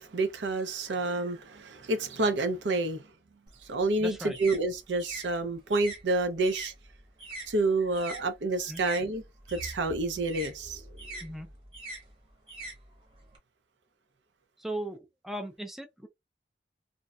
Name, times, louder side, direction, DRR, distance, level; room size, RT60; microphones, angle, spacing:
voice 1, 0.0-3.0 3.7-6.7 7.5-9.2 9.5-11.1, right 2 dB, 85° right, 0.6 m, -29 dB
sound 1, 3.5-8.2 8.5-13.4, right 2 dB, 30° right, 0.9 m, -44 dB
voice 2, 4.0-4.4 8.7-8.8 11.2-11.5 14.6-16.1, right 1 dB, ahead, 0.3 m, -37 dB
2.7 x 2.1 x 2.3 m
head